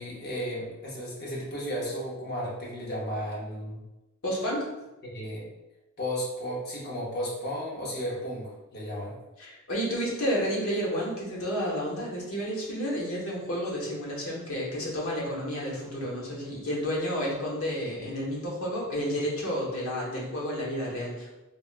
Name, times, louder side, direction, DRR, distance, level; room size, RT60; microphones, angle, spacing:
voice 1, 0.0-3.8 5.0-5.5 6.0-9.1, equal, 50° left, -5 dB, 0.8 m, -34 dB
voice 2, 4.2-4.7 9.4-21.3, equal, 85° left, -4 dB, 0.9 m, -31 dB
3.4 x 2.0 x 2.5 m, 1.0 s
head